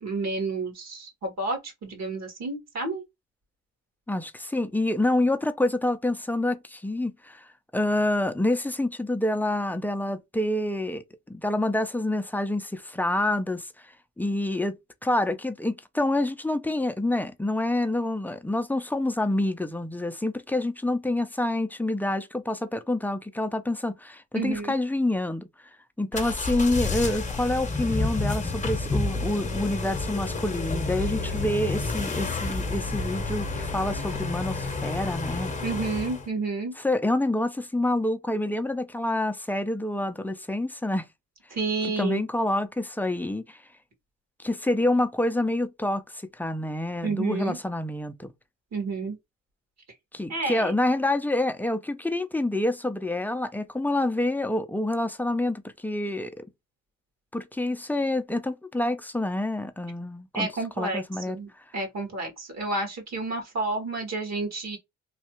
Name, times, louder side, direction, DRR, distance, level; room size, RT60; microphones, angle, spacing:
voice 1, 0.0-3.0 24.3-24.8 35.6-36.7 41.5-42.2 47.0-47.6 48.7-49.2 50.3-50.7 60.3-64.8, right 3 dB, 60° right, 1.7 m, -30 dB
voice 2, 4.1-13.7 14.2-25.5 26.0-35.5 36.8-41.1 41.8-43.6 44.4-46.0 46.4-48.3 50.1-56.5 57.3-60.5 60.8-61.6, left 1 dB, 5° left, 0.4 m, -27 dB
sound 1, 26.1-36.3, left 3 dB, 25° left, 0.8 m, -30 dB
3.2 x 2.3 x 2.9 m
cardioid pair, 90°, 30 cm